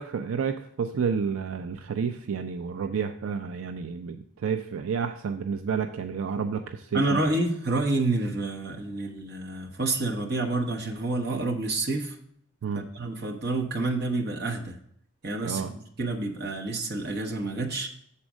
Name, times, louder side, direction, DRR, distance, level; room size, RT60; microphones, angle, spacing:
voice 1, 0.0-7.2 12.6-12.8 15.4-15.7, right 6 dB, 75° right, 7 dB, 0.4 m, -30 dB
voice 2, 6.9-12.2 12.9-14.8 15.2-17.9, right 2 dB, 50° right, 1 dB, 1.0 m, -28 dB
7.2 x 4.3 x 6.2 m, 0.68 s
head